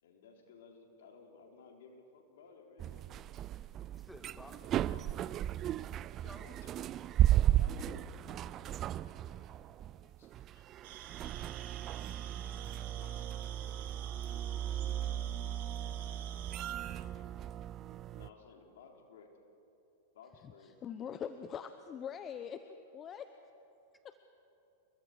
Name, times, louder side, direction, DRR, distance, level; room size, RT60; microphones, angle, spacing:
voice 1, 0.0-3.3 6.2-6.9 7.5-8.2 9.3-9.6 10.0-10.6 12.4-13.1 18.1-19.4 20.1-20.7, left 5 dB, 70° left, 2 dB, 3.5 m, -58 dB
sound 1, 2.8-18.3, right 12 dB, 35° right, 0.5 m, -35 dB
voice 2, 3.9-5.1 6.0-6.5 23.9-24.0, equal, ahead, 5 dB, 2.0 m, -54 dB
sound 2, 10.8-16.7, right 10 dB, 60° right, 2.2 m, -50 dB
voice 3, 20.2-23.3 24.0-24.2, left 8 dB, 30° left, 10 dB, 0.9 m, -43 dB
28.0 x 22.5 x 4.8 m, 2.8 s
hypercardioid pair, 105°, 0 cm